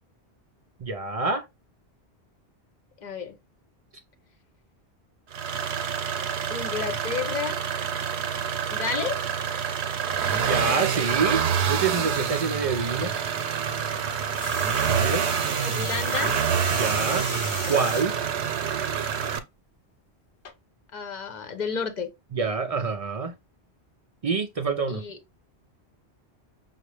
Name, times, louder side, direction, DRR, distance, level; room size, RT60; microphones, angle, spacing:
voice 1, 0.8-1.5 10.4-11.4 11.7-13.1 14.9-15.4 16.7-17.3 17.7-18.1 22.3-23.3 24.2-25.0, right 5 dB, 65° right, 0.3 m, -26 dB
voice 2, 3.0-3.3 6.5-7.5 8.7-9.3 15.6-16.3 20.9-22.1 24.9-25.2, left 5 dB, 45° left, 0.7 m, -31 dB
sound 1, 5.3-19.4, right 7 dB, 90° right, 0.9 m, -27 dB
sound 2, 14.4-18.1 18.7-19.2 20.5-20.6, left 6 dB, 85° left, 1.0 m, -38 dB
5.6 x 2.0 x 3.2 m
omnidirectional pair, 1.1 m